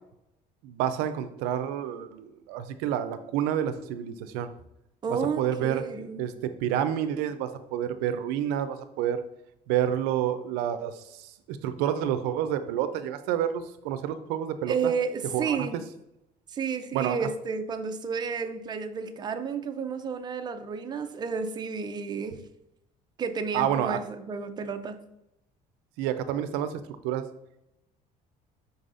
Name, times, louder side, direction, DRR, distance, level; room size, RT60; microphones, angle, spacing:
voice 1, 0.6-4.5 5.4-5.8 6.2-9.2 9.7-14.9 15.3-15.7 16.9-17.2 23.5-24.0 26.0-27.3, right 10 dB, 90° right, 10 dB, 0.4 m, -29 dB
voice 2, 5.0-6.3 14.6-15.8 16.5-22.4 23.2-25.0, right 5 dB, 25° right, 7 dB, 0.4 m, -31 dB
5.4 x 3.9 x 2.5 m, 0.85 s
cardioid pair, 115°, 16 cm